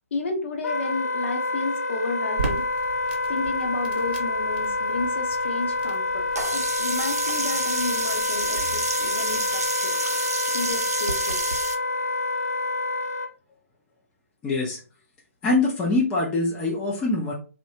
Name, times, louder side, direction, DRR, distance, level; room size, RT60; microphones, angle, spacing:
voice 1, 0.1-2.7 3.3-10.0 10.5-11.4, left 3 dB, 50° left, 3 dB, 0.8 m, -32 dB
Wind instrument woodwind instrument, 0.6-13.3, left 2 dB, 75° left, 0.4 m, -27 dB
Crackle, 2.4-9.7, right 4 dB, 40° right, 0.7 m, -39 dB
Sink (filling or washing), 6.4-11.8, right 3 dB, 80° right, 0.5 m, -29 dB
voice 2, 14.4-14.8 15.4-17.3, left 2 dB, 10° left, -3 dB, 0.4 m, -23 dB
2.6 x 2.1 x 2.8 m, 0.36 s
figure-of-eight pair, 140°, 8 cm